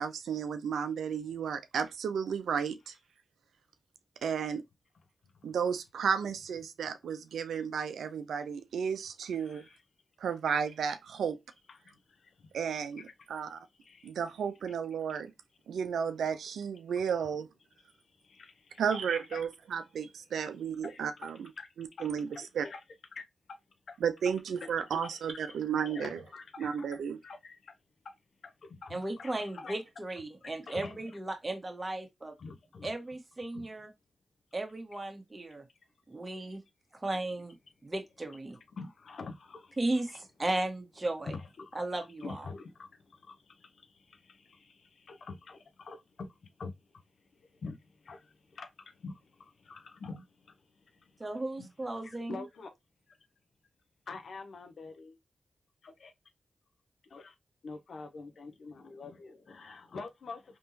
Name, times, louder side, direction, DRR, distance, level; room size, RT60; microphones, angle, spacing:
voice 1, 0.0-2.9 4.2-4.6 5.4-9.6 10.2-11.4 12.5-13.0 13.3-13.6 14.0-15.3 15.7-17.5 18.8-21.5 21.8-22.3 22.5-22.7 24.0-26.2 26.6-27.2, right 7 dB, 85° right, 0.5 m, -33 dB
voice 2, 9.4-9.8 11.7-12.5 13.0-13.1 13.3-13.4 13.8-14.1 14.7-14.8 15.1-15.2 17.8-19.0 19.3-19.4 20.8-21.7 22.0-22.8 23.1-23.6 23.9-24.0 24.6-24.7 25.0-25.6 25.9-26.9 27.2-27.7 28.0-28.1 28.4-29.8 30.4-31.0 32.4-32.9 33.5-33.7 38.7-39.8 40.1-40.2 41.2-46.7 47.2-51.3 51.6-52.8 53.1-53.2 54.1-55.2 55.8-56.1 57.1-57.3 57.6-60.6, left 4 dB, 75° left, 0.7 m, -47 dB
voice 3, 28.9-32.3 32.8-33.9 34.5-35.7 36.1-36.6 36.9-37.6 37.8-38.6 39.8-41.4 41.7-42.5 51.2-52.4, right 2 dB, 30° right, 1.4 m, -35 dB
3.5 x 3.0 x 2.8 m
supercardioid pair, 45°, 0 cm